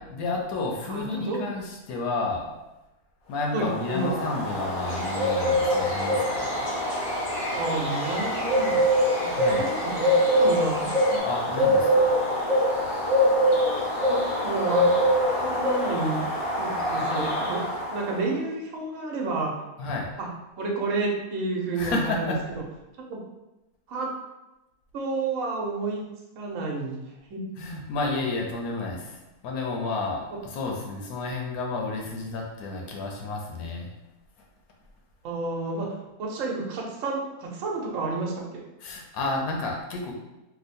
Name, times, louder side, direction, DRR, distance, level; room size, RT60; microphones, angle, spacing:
voice 1, 0.0-2.5 3.3-6.7 9.3-9.6 11.2-12.1 19.8-20.1 21.8-22.4 27.6-33.9 38.8-40.1, left 3 dB, 75° left, 0 dB, 1.1 m, -31 dB
voice 2, 0.9-1.4 3.5-4.1 7.5-8.8 9.2-9.7 9.9-11.2 13.5-14.9 15.3-16.2 16.6-17.6 17.9-19.5 20.2-20.3 20.6-22.4 23.1-23.2 23.9-24.1 24.9-26.0 26.4-27.4 35.2-35.9 36.2-38.6, right 3 dB, 65° right, -1 dB, 1.1 m, -30 dB
Bird, 3.5-18.2, equal, 55° left, 0.4 m, -24 dB
sound 1, 4.8-11.2, left 1 dB, 40° left, 0.8 m, -38 dB
3.0 x 2.1 x 4.1 m, 0.99 s
omnidirectional pair, 1.6 m